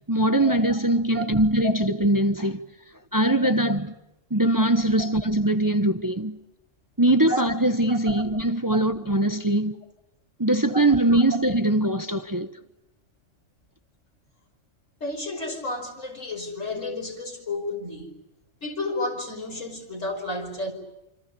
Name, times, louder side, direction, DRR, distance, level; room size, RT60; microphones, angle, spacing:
voice 1, 0.1-2.6 3.1-3.9 4.3-6.4 7.0-9.7 10.4-12.5, right 1 dB, 15° right, 1.0 m, -22 dB
voice 2, 7.9-8.2 10.7-10.8 11.1-11.2 15.0-18.1 18.6-20.7, left 1 dB, 85° left, 5.7 m, -31 dB
28.5 x 26.0 x 7.0 m
omnidirectional pair, 1.3 m